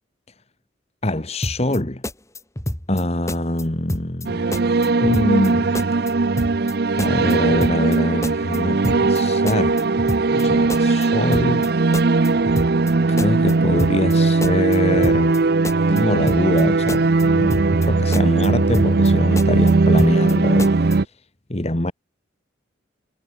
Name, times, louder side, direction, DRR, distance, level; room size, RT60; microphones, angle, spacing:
voice 1, 1.0-2.0 2.9-4.5 5.0-5.7 7.0-9.8 10.3-11.7 13.1-15.4 15.9-20.7 21.5-21.9, left 1 dB, 35° left, 1.7 m, -23 dB
sound 1, 1.4-1.8 2.0-3.0 3.3-3.6 3.9-4.3 4.5-5.5 5.7-6.1 6.4-6.7 7.0-8.0 8.2-8.6 8.8-9.2 9.5-10.4 10.7-11.1 11.3-11.7 11.9-12.9 13.2-13.5 13.8-14.2 14.4-15.4 15.6-16.0 16.3-16.6 16.9-17.9 18.1-18.5 18.7-19.1 19.4-20.3 20.6-21.0, left 1 dB, 15° left, 2.1 m, -28 dB
sound 2, 4.3-21.1, right 3 dB, 55° right, 0.6 m, -18 dB
head